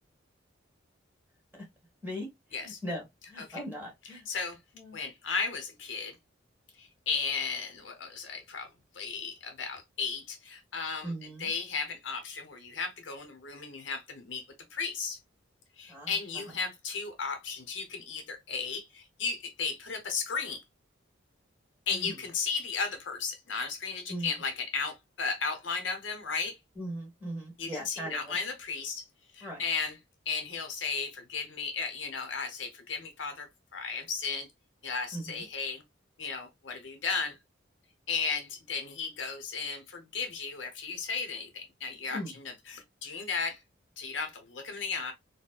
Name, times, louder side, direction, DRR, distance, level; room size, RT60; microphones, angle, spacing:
voice 1, 2.0-4.2 4.7-5.0 11.0-11.5 15.9-16.6 21.9-22.2 24.1-24.4 26.7-28.4 29.4-29.7 35.1-35.4 42.1-42.3, equal, 10° right, 1.6 m, -39 dB
voice 2, 4.3-4.6 4.9-6.2 6.8-8.7 8.9-11.1 11.4-15.2 15.8-20.6 21.9-26.6 27.6-29.0 29.3-30.0 30.3-34.5 34.8-35.8 36.2-37.4 38.1-43.6 44.0-45.1, left 5 dB, 75° left, 0.8 m, -35 dB
4.1 x 2.1 x 2.2 m
head